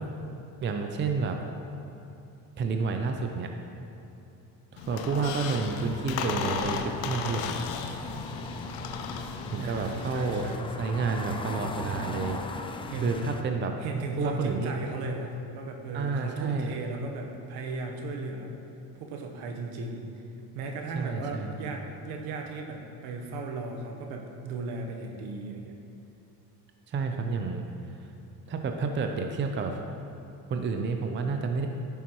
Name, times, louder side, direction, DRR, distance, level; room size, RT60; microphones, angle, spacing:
voice 1, 0.6-1.4 2.6-3.5 4.7-7.6 9.5-10.4 10.8-12.4 13.0-13.7 14.2-14.7 15.9-16.8 21.0-21.6 26.9-27.6 28.0-28.1 28.5-29.8 30.5-31.7, right 4 dB, 30° right, 4 dB, 0.6 m, -30 dB
Squeak, 4.8-10.6, left 6 dB, 90° left, 0.7 m, -36 dB
sound 1, 5.5-13.4, left 3 dB, 15° left, 0.3 m, -38 dB
voice 2, 9.6-10.7 12.9-13.2 13.8-18.6 18.9-20.1 20.5-25.7, right 3 dB, 70° right, 2 dB, 1.2 m, -36 dB
10.5 x 7.0 x 3.1 m, 2.8 s
cardioid pair, 110°, 40 cm